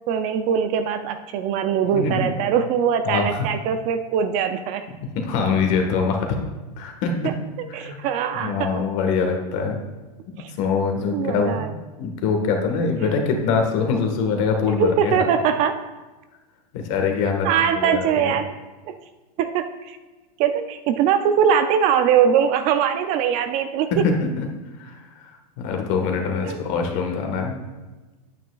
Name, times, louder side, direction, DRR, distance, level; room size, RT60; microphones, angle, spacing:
voice 1, 0.1-4.9 7.2-8.9 10.4-10.5 11.1-11.7 14.6-15.8 17.4-18.5 18.9-19.0 19.4-20.0 20.4-24.0 26.5-26.6, right 8 dB, 35° right, 9 dB, 0.4 m, -22 dB
voice 2, 1.9-2.3 3.0-3.4 5.1-6.4 6.8-7.3 7.7-8.0 8.4-9.8 10.3-15.2 16.7-17.5 17.7-18.3 23.9-24.5 24.8-27.6, left 5 dB, 50° left, 3 dB, 1.5 m, -24 dB
9.1 x 9.0 x 2.3 m, 1.2 s
supercardioid pair, 140°, 21 cm